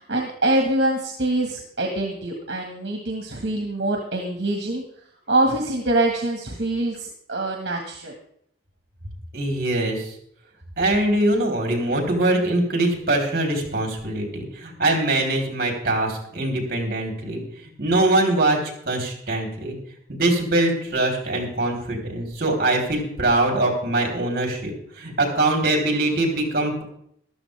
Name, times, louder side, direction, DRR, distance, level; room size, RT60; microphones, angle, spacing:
voice 1, 0.0-4.8 5.3-8.1, right 2 dB, 70° right, 2 dB, 1.8 m, -24 dB
voice 2, 9.3-10.1 10.8-17.4 17.8-18.6 18.9-19.8 20.1-26.8, right 2 dB, 55° right, 1 dB, 3.8 m, -22 dB
14.5 x 12.5 x 3.5 m, 0.68 s
head